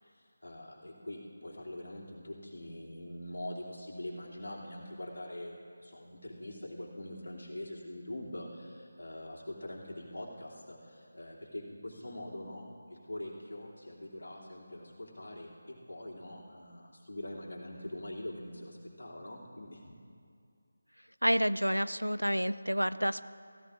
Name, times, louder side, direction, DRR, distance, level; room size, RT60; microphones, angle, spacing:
voice 1, 0.0-19.9, left 1 dB, 60° left, -5 dB, 2.8 m, -44 dB
voice 2, 21.2-23.2, equal, 90° right, 15 dB, 0.4 m, -29 dB
16.0 x 15.5 x 2.5 m, 2.4 s
figure-of-eight pair, 160°, 0 cm